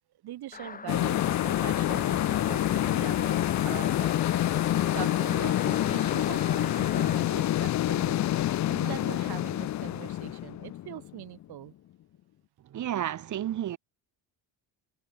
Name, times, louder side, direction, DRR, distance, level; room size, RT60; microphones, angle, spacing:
voice 1, 0.2-3.4 3.6-4.2 4.9-8.2 8.7-11.7, right 13 dB, 75° right, 5.3 m, -42 dB
sound 1, 0.5-7.3, left 5 dB, 20° left, 1.8 m, -40 dB
sound 2, 0.9-11.4, left 13 dB, 45° left, 0.6 m, -27 dB
voice 2, 12.6-13.8, right 11 dB, 50° right, 1.1 m, -31 dB
cardioid pair, 125°, 39 cm